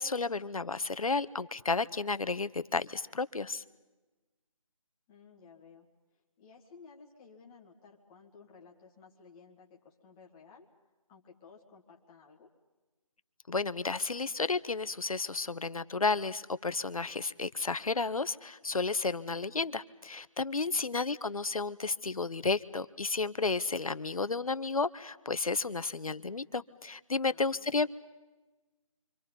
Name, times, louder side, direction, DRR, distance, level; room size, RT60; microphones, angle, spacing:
voice 1, 0.0-3.6 13.5-27.9, left 4 dB, 80° left, 15 dB, 1.1 m, -32 dB
voice 2, 5.1-5.9 6.1-10.7 11.1-12.5 20.7-21.0 27.3-27.7, left 5 dB, 10° left, -1 dB, 1.7 m, -56 dB
29.5 x 25.5 x 5.4 m, 1.2 s
figure-of-eight pair, 165°, 18 cm